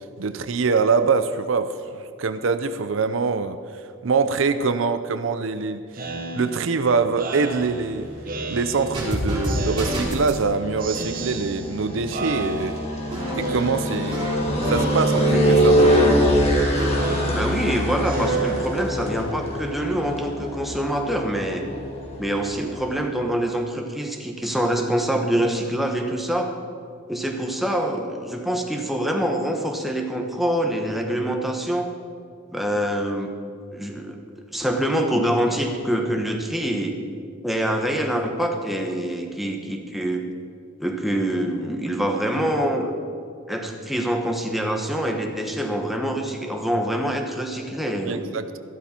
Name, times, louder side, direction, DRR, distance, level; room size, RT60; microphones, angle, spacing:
voice 1, 0.2-3.6 4.0-5.8 6.3-8.1 8.5-12.8 13.4-14.3 14.7-15.8 47.9-48.6, right 4 dB, 70° right, 11 dB, 0.5 m, -24 dB
Speech synthesizer, 5.9-9.1 9.4-10.5 10.8-11.8 12.1-13.0 13.4-14.3 14.6-15.4 15.7-19.2, right 3 dB, 45° right, 1.0 m, -32 dB
sound 1, 7.6-23.1, equal, 30° left, 1.8 m, -25 dB
sound 2, 8.9-10.4 13.1-16.3 16.6-16.9, equal, 25° right, 3.1 m, -28 dB
voice 2, 17.3-21.7 22.2-26.5 27.1-31.9 32.5-33.3 33.7-34.2 34.5-36.9 37.4-40.2 40.8-42.9 43.5-48.2, right 1 dB, ahead, 2 dB, 1.1 m, -25 dB
13.0 x 12.5 x 4.4 m, 2.2 s
head